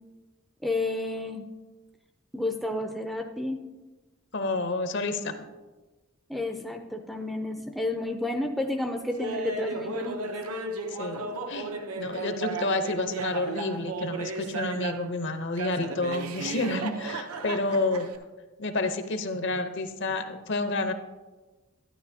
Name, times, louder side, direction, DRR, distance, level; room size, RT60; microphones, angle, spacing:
voice 1, 0.6-1.4 2.3-3.6 6.3-10.2, left 2 dB, ahead, 3 dB, 0.4 m, -31 dB
voice 2, 4.3-5.5 10.9-18.1 18.6-20.9, left 2 dB, 55° left, 8 dB, 0.7 m, -29 dB
Laughter, 9.2-15.1 15.6-18.2, right 3 dB, 80° right, 0.7 m, -35 dB
12.0 x 10.0 x 2.7 m, 1.2 s
head